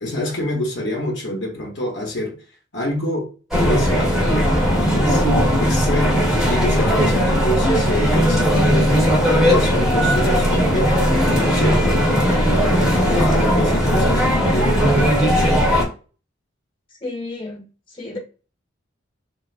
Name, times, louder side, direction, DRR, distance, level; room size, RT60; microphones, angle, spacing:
voice 1, 0.0-2.4 2.7-3.3 3.6-5.2 5.6-14.8, left 1 dB, 60° left, 0.8 m, -26 dB
sound 1, 3.5-15.8, equal, ahead, 0.8 m, -17 dB
voice 2, 17.0-18.2, left 2 dB, 25° left, 1.0 m, -32 dB
3.1 x 2.4 x 2.4 m
head